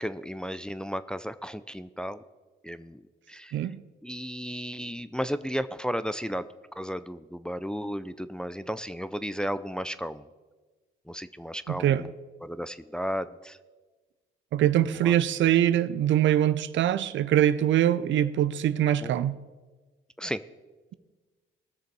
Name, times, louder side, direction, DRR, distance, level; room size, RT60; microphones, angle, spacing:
voice 1, 0.0-2.2 2.6-3.0 3.3-3.7 4.0-6.5 6.8-10.3 11.1-12.1 12.4-13.6 15.0-15.2 19.0-19.1 20.2-20.4, equal, 5° left, 12 dB, 0.5 m, -34 dB
voice 2, 3.5-3.8 11.7-12.0 14.5-19.4, right 11 dB, 70° right, 14 dB, 0.6 m, -23 dB
19.0 x 6.7 x 4.7 m, 1.3 s
cardioid pair, 90°, 20 cm